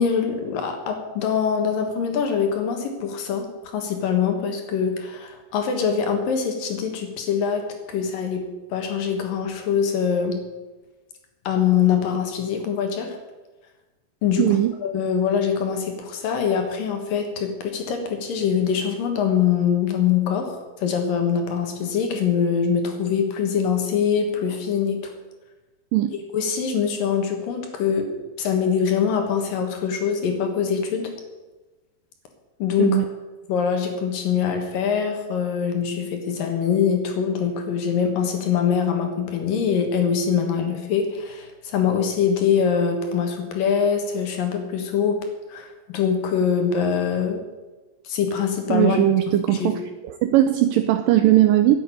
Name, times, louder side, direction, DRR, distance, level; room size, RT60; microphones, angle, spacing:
voice 1, 0.0-7.6 7.9-10.4 11.5-13.1 14.2-25.1 26.1-28.1 28.4-31.1 32.6-33.0 33.5-45.2 45.5-47.4 48.0-49.0 49.5-49.7, left 7 dB, 65° left, 4 dB, 2.9 m, -23 dB
voice 2, 14.4-14.7 25.9-26.1 32.8-33.0 48.7-49.8 50.2-51.8, right 13 dB, 85° right, 10 dB, 1.9 m, -18 dB
11.0 x 7.3 x 9.3 m, 1.2 s
omnidirectional pair, 4.5 m